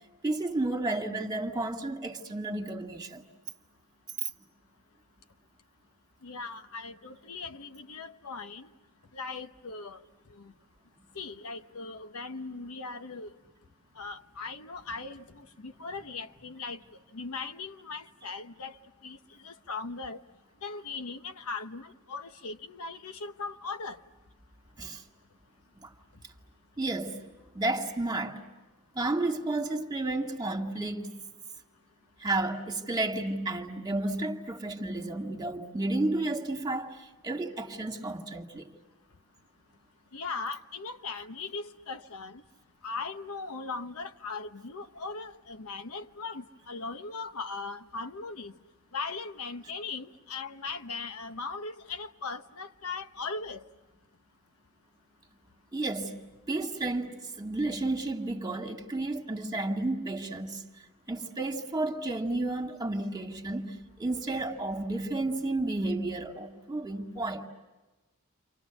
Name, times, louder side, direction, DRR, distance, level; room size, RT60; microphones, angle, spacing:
voice 1, 0.2-3.2 24.8-25.0 25.8-25.9 26.8-27.2 27.5-28.4 28.9-31.2 32.2-38.7 55.7-56.2 56.5-60.6 61.1-67.5, right 2 dB, 20° right, 2.0 m, -32 dB
voice 2, 6.2-8.7 9.1-10.0 10.3-10.5 11.1-13.3 14.0-16.8 17.1-20.2 20.6-24.0 40.1-42.4 42.8-48.5 48.9-53.6, left 4 dB, 70° left, 1.0 m, -39 dB
30.0 x 26.5 x 7.0 m
head